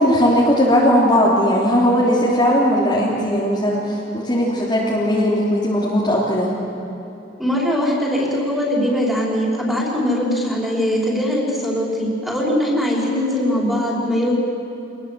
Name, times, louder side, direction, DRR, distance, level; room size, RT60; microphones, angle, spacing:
voice 1, 0.0-6.5, equal, 25° left, -6 dB, 3.2 m, -18 dB
voice 2, 7.4-14.3, equal, ahead, -4 dB, 5.3 m, -21 dB
26.5 x 20.0 x 7.6 m, 2.8 s
head